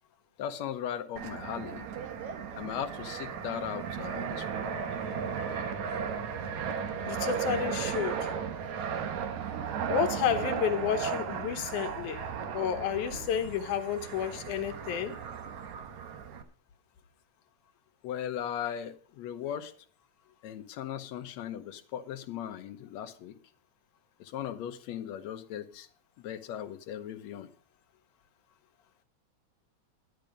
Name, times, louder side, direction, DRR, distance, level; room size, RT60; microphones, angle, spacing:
voice 1, 0.4-1.9 2.6-4.8 18.0-19.7 20.4-23.4 24.2-25.9 26.2-27.5, left 9 dB, 70° left, 2.1 m, -38 dB
Fixed-wing aircraft airplane, 1.2-16.4, right 7 dB, 75° right, 2.6 m, -35 dB
voice 2, 7.0-8.3 9.9-15.2, left 8 dB, 85° left, 2.5 m, -31 dB
12.0 x 10.5 x 5.1 m
omnidirectional pair, 3.4 m